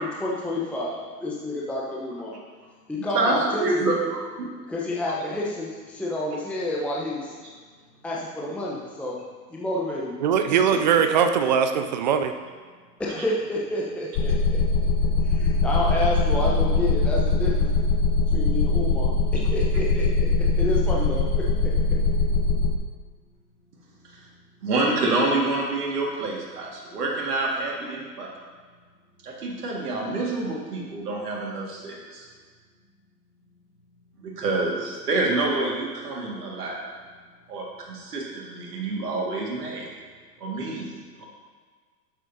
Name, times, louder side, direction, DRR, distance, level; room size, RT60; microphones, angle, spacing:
voice 1, 0.2-2.4 2.9-3.9 4.7-7.3 8.0-9.2 9.5-10.1 10.5-11.0 13.0-14.6 15.2-17.7 18.3-20.3 20.6-21.3, left 1 dB, ahead, -5 dB, 0.8 m, -29 dB
voice 2, 3.0-4.0 4.4-4.5 24.6-28.3 29.2-32.3 34.2-36.8 37.5-39.9 40.4-41.2, right 2 dB, 70° right, -3 dB, 2.0 m, -27 dB
voice 3, 10.2-12.3, right 7 dB, 30° right, 7 dB, 0.4 m, -21 dB
sound 1, 14.2-22.8, left 3 dB, 40° left, 0.9 m, -22 dB
12.0 x 7.6 x 2.7 m, 1.5 s
figure-of-eight pair, 105°, 49 cm